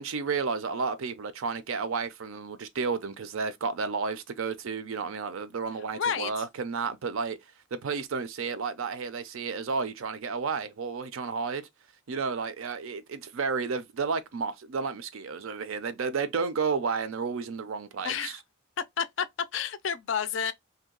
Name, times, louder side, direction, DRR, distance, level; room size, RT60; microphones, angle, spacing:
voice 1, 0.0-7.4 7.7-11.7 12.1-18.4, right 5 dB, 70° right, 0.5 m, -32 dB
voice 2, 5.9-6.3 18.0-18.4 19.0-19.3 19.5-20.5, left 7 dB, 55° left, 0.3 m, -30 dB
2.7 x 2.2 x 3.7 m
head